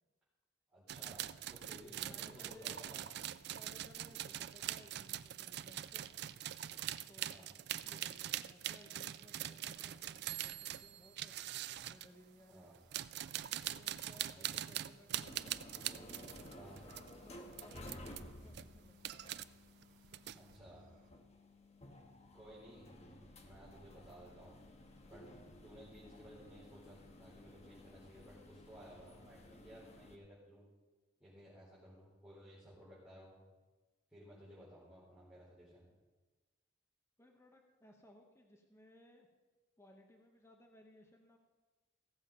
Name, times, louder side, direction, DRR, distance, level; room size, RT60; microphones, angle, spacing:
voice 1, 0.7-3.1 7.3-7.5 12.5-12.8 14.2-14.5 16.5-16.8 20.3-20.9 22.3-24.6 25.0-25.2 25.6-30.6 31.2-33.4 34.1-35.8, equal, 5° right, -11 dB, 4.1 m, -57 dB
sound 1, 0.9-12.1 12.7-17.1 17.5-18.2 18.5-19.4 19.8-20.6, right 12 dB, 60° right, 0.4 m, -43 dB
voice 2, 2.0-2.8 3.5-6.1 7.1-11.4 11.9-12.7 13.5-15.6 16.2-19.3 37.2-39.3 39.8-41.4, left 1 dB, 15° left, 2 dB, 0.9 m, -62 dB
Cricket, 9.7-21.1, right 2 dB, 45° right, 1.0 m, -72 dB
sound 2, 15.1-30.2, left 1 dB, 35° left, 1.1 m, -55 dB
16.0 x 7.2 x 5.2 m, 1.2 s
head